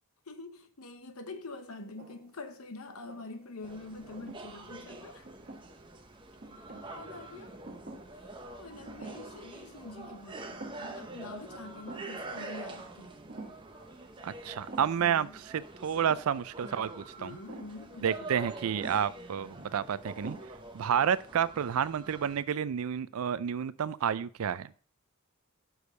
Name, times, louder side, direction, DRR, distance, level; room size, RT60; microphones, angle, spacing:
voice 1, 0.3-5.3 6.9-7.5 8.1-13.1 15.0-15.4 17.2-18.3, left 3 dB, 80° left, 0.9 m, -46 dB
sound 1, 1.8-2.4 2.9-3.6 4.2-4.5 5.3-6.0 6.4-7.0 7.6-8.2 8.4-8.5 8.9-9.4 9.7-9.8 10.4-11.1 11.3-11.4 11.9-12.2 13.3-13.7 14.7-15.1 16.1-16.4 17.5-17.8 18.8-19.2 19.8-19.9 20.2-20.7, right 2 dB, 40° right, 1.1 m, -46 dB
sound 2, 3.6-22.4, right 2 dB, 20° right, 0.7 m, -46 dB
voice 2, 14.2-15.3 15.5-17.4 18.0-20.4 20.7-24.7, right 8 dB, 80° right, 0.4 m, -30 dB
6.3 x 5.3 x 4.8 m
head